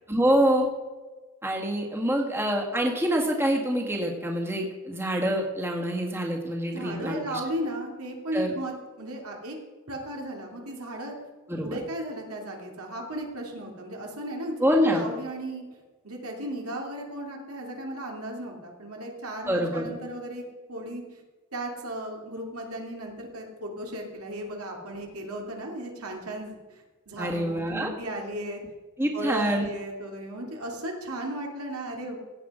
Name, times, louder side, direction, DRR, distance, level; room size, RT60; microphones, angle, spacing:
voice 1, 0.1-0.7 1.4-7.4 8.3-8.5 11.5-11.8 14.6-15.1 19.5-19.9 27.2-27.9 29.0-29.7, equal, 10° right, 0 dB, 1.8 m, -26 dB
voice 2, 6.7-9.6 9.9-11.1 11.6-15.6 16.0-20.4 20.7-21.0 21.5-28.6 29.1-32.2, right 1 dB, 75° right, 1 dB, 2.8 m, -35 dB
16.5 x 8.2 x 5.0 m, 1.3 s
head